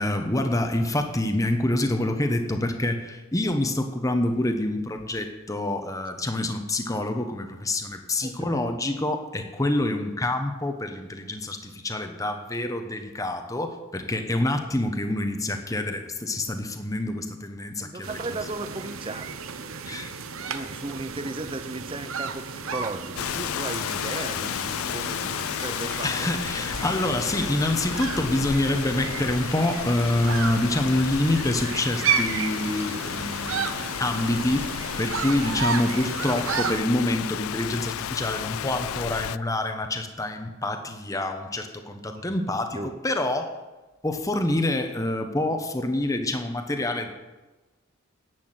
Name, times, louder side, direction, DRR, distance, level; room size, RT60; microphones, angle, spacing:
voice 1, 0.0-18.2 19.9-20.1 26.0-34.7 35.0-43.5 44.0-47.1, left 1 dB, 15° left, 6 dB, 1.0 m, -26 dB
voice 2, 8.2-8.7 17.8-19.4 20.5-26.3 42.1-42.4 42.7-42.9, right 2 dB, 25° right, 10 dB, 0.7 m, -36 dB
sound 1, 18.0-36.8, right 6 dB, 80° right, 0.8 m, -33 dB
Rain, 23.1-39.4, left 10 dB, 80° left, 0.3 m, -32 dB
11.0 x 8.3 x 7.6 m, 1.1 s
head